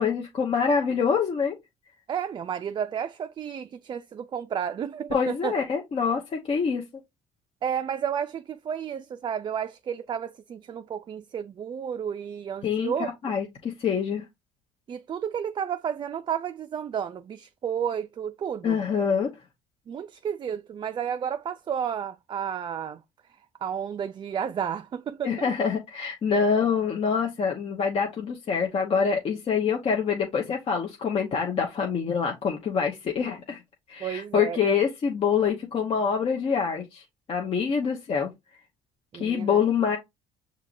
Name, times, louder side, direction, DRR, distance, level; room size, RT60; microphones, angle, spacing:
voice 1, 0.0-1.6 5.1-6.8 12.6-12.9 13.2-14.2 18.6-19.3 25.2-33.6 33.9-38.3 39.1-40.0, left 6 dB, 45° left, 0.8 m, -25 dB
voice 2, 2.1-5.6 7.6-13.1 14.9-18.8 19.9-23.0 23.6-25.5 34.0-34.7 39.1-39.6, right 8 dB, 35° right, 0.3 m, -32 dB
5.7 x 2.9 x 2.5 m
supercardioid pair, 85°, 14 cm